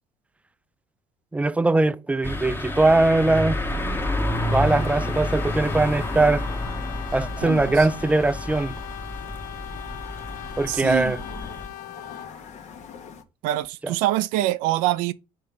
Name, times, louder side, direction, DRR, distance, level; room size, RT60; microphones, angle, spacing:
voice 1, 1.3-3.6 4.5-6.5 7.1-8.8 10.6-11.2 13.8-14.0, right 2 dB, 10° right, 0.4 m, -21 dB
sound 1, 2.2-11.7, left 1 dB, 15° left, 1.1 m, -29 dB
Brass instrument, 4.2-12.4, left 15 dB, 75° left, 0.4 m, -39 dB
sound 2, 4.6-13.2, left 6 dB, 60° left, 1.2 m, -46 dB
voice 2, 7.4-7.7 10.7-11.1 13.4-15.1, right 15 dB, 80° right, 0.4 m, -24 dB
5.5 x 4.6 x 5.2 m
supercardioid pair, 80°, 14 cm